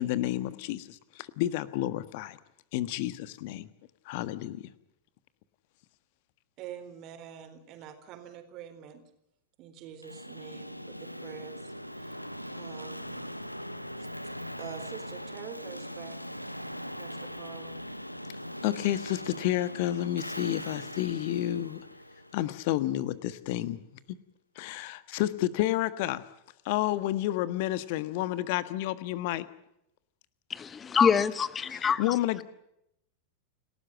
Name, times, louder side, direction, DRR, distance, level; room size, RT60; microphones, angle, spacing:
voice 1, 0.0-2.4 2.7-3.7 4.0-4.6 18.6-21.8 22.3-23.8 24.5-26.2 26.6-29.5 31.6-32.4, left 14 dB, 50° left, 1.4 m, -30 dB
voice 2, 6.6-9.0 9.6-12.2 12.5-13.3 13.9-14.3 14.6-16.2 16.9-17.8, right 9 dB, 40° right, 4.0 m, -46 dB
sound 1, 10.0-22.9, equal, 90° left, 0.9 m, -41 dB
voice 3, 30.5-32.0, left 7 dB, 20° left, 1.1 m, -25 dB
29.5 x 13.0 x 8.9 m
figure-of-eight pair, 90°, 0 cm